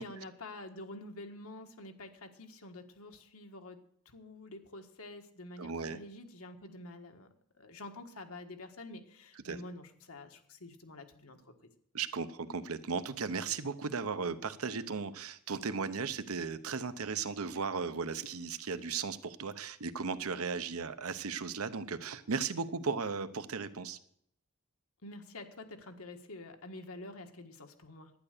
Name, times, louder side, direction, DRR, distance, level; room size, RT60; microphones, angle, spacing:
voice 1, 0.0-3.8 4.0-7.3 7.5-11.5 25.0-28.1, left 2 dB, 85° left, 5 dB, 1.6 m, -48 dB
voice 2, 5.6-6.0 9.4-9.6 11.9-24.0, right 5 dB, 85° right, 12 dB, 0.8 m, -36 dB
11.5 x 9.8 x 6.7 m, 0.68 s
head